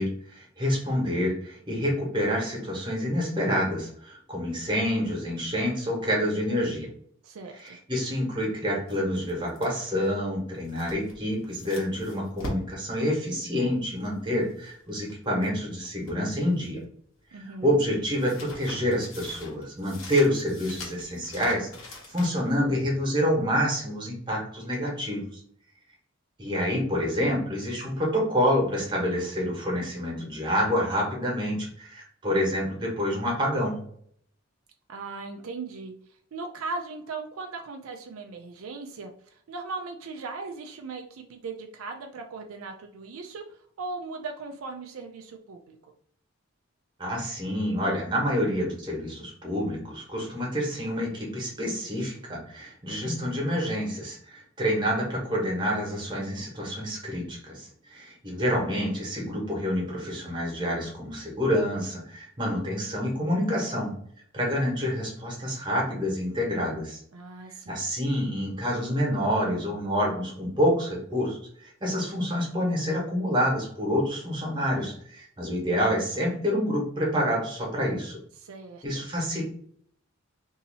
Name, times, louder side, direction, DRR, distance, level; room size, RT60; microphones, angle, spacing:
voice 1, 0.0-6.9 7.6-16.8 17.3-21.7 22.1-25.4 26.4-33.8 47.0-63.9 64.3-67.0 67.7-78.2 78.8-79.4, equal, 20° right, -2 dB, 1.3 m, -27 dB
voice 2, 7.2-7.8 17.3-17.8 34.9-35.9 36.3-43.4 43.8-45.8 67.1-67.8 78.4-79.0, right 3 dB, 80° right, 4 dB, 0.4 m, -38 dB
sound 1, 8.9-15.6 15.8-17.0 17.2-22.5, left 1 dB, 65° left, 1.2 m, -43 dB
2.7 x 2.7 x 4.0 m, 0.63 s
head